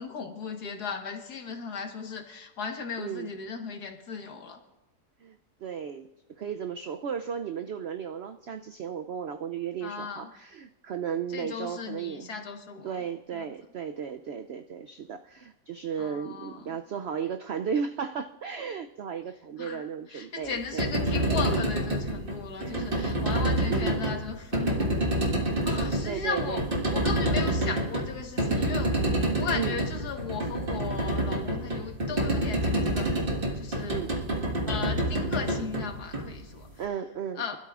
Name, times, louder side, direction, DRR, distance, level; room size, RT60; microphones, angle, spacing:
voice 1, 0.0-4.6 9.8-10.3 11.3-12.9 13.3-13.5 16.0-16.8 19.6-25.3 25.7-26.6 26.9-29.0 29.4-33.1 33.5-34.0 34.7-36.7 37.4-37.6, left 5 dB, 80° left, 4 dB, 1.9 m, -36 dB
voice 2, 3.0-3.3 5.2-6.1 6.4-12.4 12.8-20.9 21.4-21.7 22.6-22.9 23.7-24.0 26.1-26.7 27.6-27.8 29.5-29.8 33.9-34.1 36.8-37.6, right 7 dB, 85° right, 8 dB, 0.5 m, -35 dB
sound 1, 20.6-36.7, right 1 dB, 35° right, 1.7 m, -28 dB
23.5 x 12.5 x 2.4 m, 1.0 s
omnidirectional pair, 1.7 m